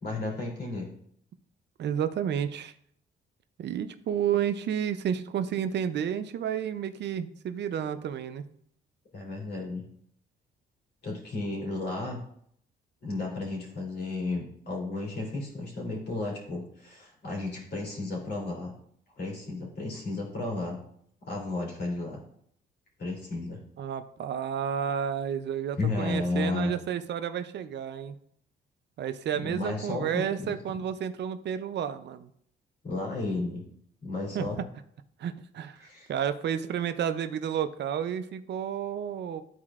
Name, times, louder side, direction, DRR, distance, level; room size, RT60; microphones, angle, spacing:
voice 1, 0.0-0.9 9.1-9.8 11.0-12.2 13.0-18.7 19.2-20.8 21.2-22.2 23.0-23.6 25.8-26.7 29.4-30.5 32.8-33.6 34.0-34.6 35.8-36.1, left 2 dB, 55° left, -2 dB, 3.0 m, -33 dB
voice 2, 1.8-2.7 3.6-8.4 23.8-28.2 29.0-32.3 34.3-34.6 35.2-39.4, right 9 dB, 60° right, 11 dB, 0.6 m, -31 dB
12.0 x 4.3 x 2.4 m, 0.67 s
cardioid pair, 90°, 20 cm